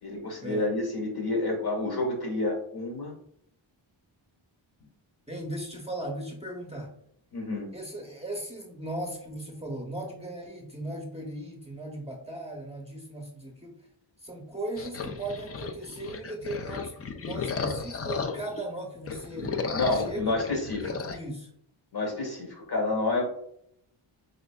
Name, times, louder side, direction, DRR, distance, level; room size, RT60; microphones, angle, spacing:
voice 1, 0.0-3.1 7.3-7.7 19.7-20.9 21.9-23.2, left 2 dB, 50° left, 0 dB, 1.4 m, -29 dB
voice 2, 5.3-6.9 7.7-13.8 14.2-16.9 17.2-19.5 19.9-20.4 20.8-21.5, right 1 dB, 15° right, 0 dB, 0.8 m, -37 dB
sound 1, 14.8-18.6 19.0-21.2, left 5 dB, 35° left, 0.4 m, -34 dB
5.0 x 2.5 x 2.3 m, 0.70 s
cardioid pair, 50°, 48 cm